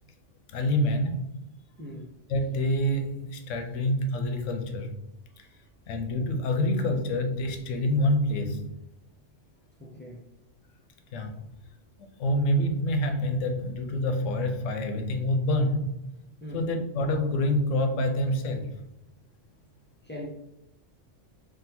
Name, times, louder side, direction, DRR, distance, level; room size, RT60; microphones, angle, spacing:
voice 1, 0.5-1.4 2.3-5.0 5.4-5.5 5.9-8.7 11.1-11.3 12.0-15.9 16.5-18.8, left 1 dB, 90° left, 5 dB, 1.0 m, -27 dB
voice 2, 1.8-2.1 5.3-5.5 9.8-10.2 16.4-16.7 20.0-20.3, equal, 15° left, -1 dB, 0.3 m, -40 dB
3.8 x 2.4 x 4.1 m, 0.86 s
omnidirectional pair, 1.3 m